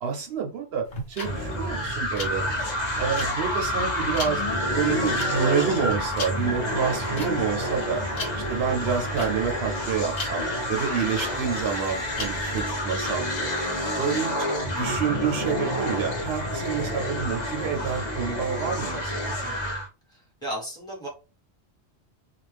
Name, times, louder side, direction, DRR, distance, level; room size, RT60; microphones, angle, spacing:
voice 1, 0.0-2.4 3.0-4.4 4.7-8.0 8.5-10.4 10.7-13.5 14.0-14.3 14.7-19.1, right 7 dB, 70° right, 3 dB, 0.8 m, -28 dB
sound 1, 0.8-12.6, left 2 dB, 65° left, 1.1 m, -38 dB
sound 2, 1.2-19.9, equal, 45° left, 0.8 m, -28 dB
voice 2, 11.1-11.5 19.4-19.7 20.1-21.1, equal, 5° left, -3 dB, 1.0 m, -37 dB
2.4 x 2.1 x 3.3 m, 0.30 s
omnidirectional pair, 1.1 m